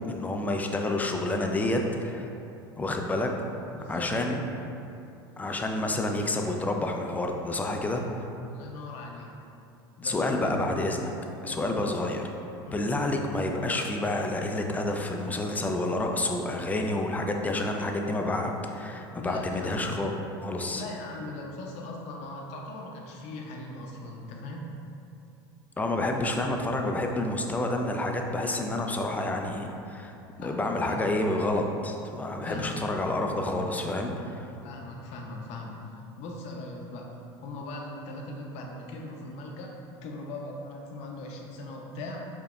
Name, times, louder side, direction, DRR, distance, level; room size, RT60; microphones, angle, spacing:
voice 1, 0.0-2.3 2.8-3.3 3.9-4.4 5.4-8.0 10.0-11.1 11.4-12.2 12.7-20.1 20.4-20.8 25.8-30.1 30.4-34.5, left 2 dB, 10° left, 2 dB, 0.4 m, -29 dB
voice 2, 3.7-4.4 8.5-9.4 10.0-10.6 11.4-11.7 12.6-12.9 19.1-20.0 20.7-24.7 30.4-31.0 32.4-32.8 34.6-35.7 36.2-37.1 37.4-39.8 40.0-42.3, left 2 dB, 55° left, 0 dB, 0.6 m, -39 dB
4.8 x 2.7 x 2.3 m, 2.7 s
hypercardioid pair, 85°, 13 cm